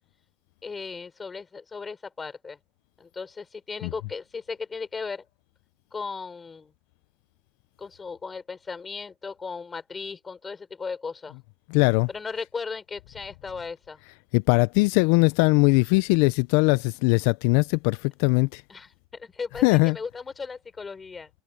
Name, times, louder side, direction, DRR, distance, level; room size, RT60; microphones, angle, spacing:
voice 1, 0.6-2.6 3.0-5.2 5.9-6.7 7.8-11.3 12.1-14.0 18.7-18.9 19.2-21.3, left 5 dB, 20° left, 3.9 m, -36 dB
voice 2, 11.7-12.1 14.3-18.6 19.6-20.0, left 26 dB, 80° left, 0.3 m, -20 dB
cardioid pair, 135°, 0 cm